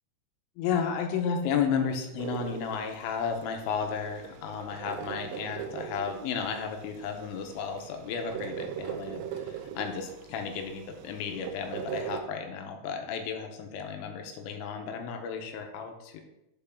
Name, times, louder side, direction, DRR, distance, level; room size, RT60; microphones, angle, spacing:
voice 1, 0.6-16.2, left 6 dB, 85° left, 4 dB, 3.1 m, -33 dB
sound 1, 2.2-12.2, right 9 dB, 80° right, 2.6 m, -40 dB
9.0 x 4.7 x 3.6 m, 0.89 s
omnidirectional pair, 5.2 m